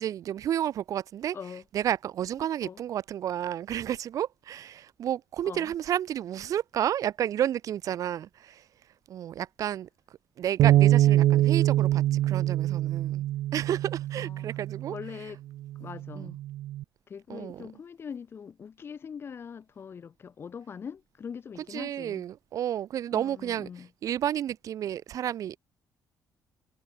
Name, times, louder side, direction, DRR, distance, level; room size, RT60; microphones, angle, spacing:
voice 1, 0.0-1.4 1.7-8.6 9.1-9.9 10.4-13.2 13.5-15.0 16.1-16.3 17.3-17.7 21.7-23.7 24.0-25.6, right 10 dB, 60° right, 2.4 m, -31 dB
voice 2, 1.3-1.6 2.4-2.8 5.4-5.7 14.2-14.5 14.9-15.4 15.8-16.4 17.1-22.3 23.1-23.9, left 6 dB, 40° left, 2.8 m, -42 dB
Bass guitar, 10.6-15.0 15.7-16.8, right 14 dB, 80° right, 1.1 m, -24 dB
cardioid pair, 135°, 6 cm